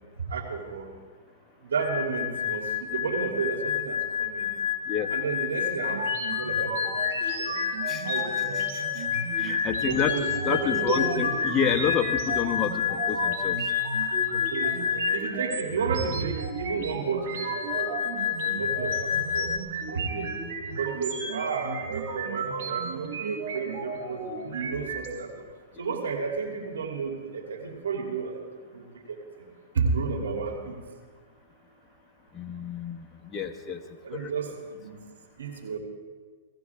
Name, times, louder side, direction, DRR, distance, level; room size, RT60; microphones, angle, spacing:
voice 1, 0.3-0.9 1.7-4.5 5.1-6.9 7.4-7.5 8.0-8.6 9.9-11.4 14.5-14.7 15.1-17.9 18.6-19.1 19.3-19.5 19.9-20.2 20.8-25.3 25.8-28.3 28.7-28.8 29.7-30.8 34.0-34.5 34.8-35.0 35.4-35.8, right 5 dB, 85° right, 1 dB, 3.0 m, -31 dB
sound 1, 1.8-15.5 17.4-19.6, left 9 dB, 40° left, 0.8 m, -29 dB
sound 2, 5.9-25.1, right 5 dB, 60° right, 3.6 m, -35 dB
voice 2, 9.4-10.1 10.5-13.6 32.3-33.0 33.3-33.8 34.1-34.3, left 7 dB, 15° left, 3 dB, 1.0 m, -29 dB
18.0 x 15.5 x 3.6 m, 1.5 s
hypercardioid pair, 140°, 0 cm